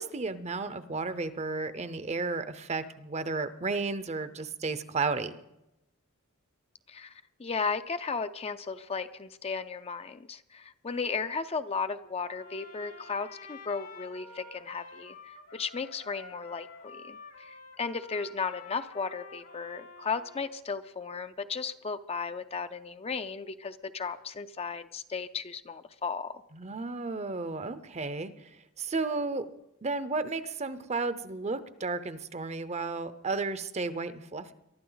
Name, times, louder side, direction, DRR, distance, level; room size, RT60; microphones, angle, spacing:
voice 1, 0.0-5.4 26.5-28.5 28.8-29.5 29.8-34.5, right 3 dB, 30° right, 13 dB, 0.7 m, -33 dB
voice 2, 6.9-15.2 15.5-26.4, left 5 dB, 25° left, 10 dB, 0.5 m, -35 dB
Trumpet, 12.2-20.5, left 4 dB, 90° left, 3.3 m, -49 dB
23.0 x 12.0 x 4.0 m, 0.87 s
head